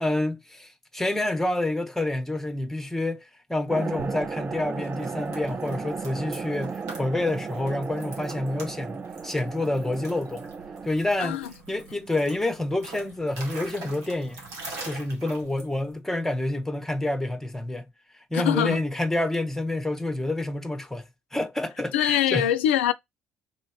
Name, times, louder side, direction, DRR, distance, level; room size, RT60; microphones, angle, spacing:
voice 1, 0.0-10.5 10.8-11.4 11.7-14.4 14.8-17.9 18.3-21.1 21.3-22.5, left 2 dB, 5° left, 1.1 m, -28 dB
sound 1, 3.7-10.9, right 5 dB, 25° right, 0.3 m, -35 dB
sound 2, 3.9-16.0, right 3 dB, 65° right, 1.8 m, -44 dB
voice 2, 18.3-18.8 21.9-22.9, left 11 dB, 75° left, 0.4 m, -23 dB
3.6 x 2.9 x 4.8 m
figure-of-eight pair, 55°, 6 cm